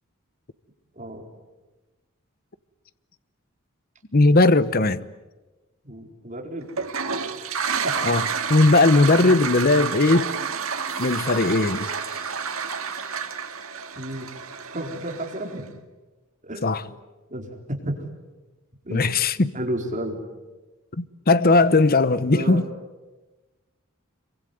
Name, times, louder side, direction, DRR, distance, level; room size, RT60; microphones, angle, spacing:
voice 1, 4.1-5.0 8.0-10.3 11.0-11.9 16.6-16.8 18.9-19.5 21.0-22.6, left 2 dB, 45° left, 0.9 m, -18 dB
voice 2, 5.8-6.7 7.8-7.9 14.0-14.3 14.7-15.7 16.4-16.8 17.3-18.0 18.8-19.1 19.5-20.2 22.3-22.7, right 1 dB, 35° right, 4.5 m, -32 dB
Toilet flush, 6.7-15.6, right 6 dB, 70° right, 2.1 m, -29 dB
sound 1, 10.9-14.4, left 3 dB, 15° left, 4.4 m, -46 dB
26.5 x 24.0 x 9.5 m
head